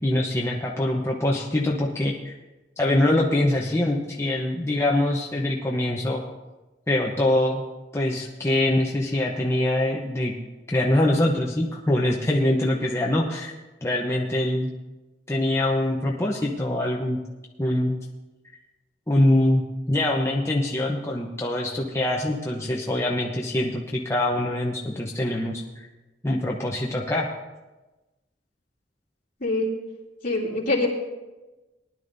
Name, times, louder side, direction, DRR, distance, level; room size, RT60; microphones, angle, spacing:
voice 1, 0.0-2.3 2.8-6.2 6.9-7.6 7.9-10.3 10.7-13.5 13.8-14.7 15.3-17.2 17.6-18.0 19.1-25.6 26.2-27.3, left 1 dB, 15° left, -2 dB, 0.9 m, -24 dB
voice 2, 30.2-30.9, left 2 dB, 50° left, -4 dB, 2.9 m, -24 dB
19.5 x 11.0 x 2.7 m, 1.1 s
head